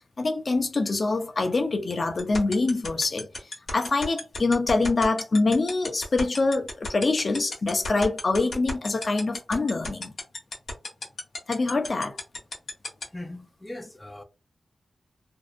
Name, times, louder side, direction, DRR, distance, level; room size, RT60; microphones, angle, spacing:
voice 1, 0.2-3.3 3.7-10.1 11.5-12.2, left 3 dB, 55° left, 0.6 m, -25 dB
sound 1, 2.2-13.0, left 3 dB, 70° left, 1.0 m, -32 dB
voice 2, 13.1-14.2, left 1 dB, 15° left, 0.5 m, -39 dB
2.7 x 2.0 x 2.5 m
cardioid pair, 60°, 0 cm